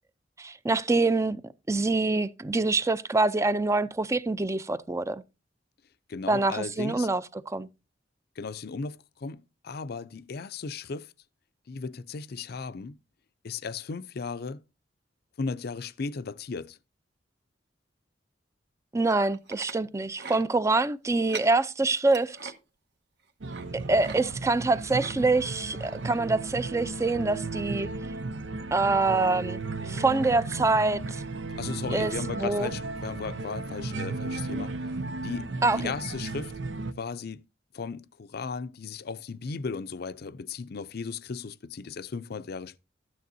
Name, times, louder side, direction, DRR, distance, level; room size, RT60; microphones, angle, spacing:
voice 1, 0.4-1.4 1.7-5.2 6.3-7.7 18.9-22.5 23.7-27.9 28.7-29.6 29.9-31.0 31.9-32.7 35.6-35.9, right 3 dB, 15° right, 0.5 m, -25 dB
voice 2, 6.1-7.1 8.4-11.1 11.7-13.0 13.4-14.6 15.4-16.8 31.6-34.7 35.2-36.5 37.0-37.4 37.7-42.8, left 4 dB, 60° left, 0.5 m, -36 dB
sound 1, 19.0-19.8 20.2-20.4 21.2-21.5 22.0-22.5 23.5-23.7 24.0-24.2 24.5-25.2 25.8-25.9 26.4-26.5, right 5 dB, 65° right, 1.3 m, -42 dB
sound 2, 23.4-36.9, right 3 dB, 85° right, 0.7 m, -35 dB
13.0 x 9.3 x 2.7 m
head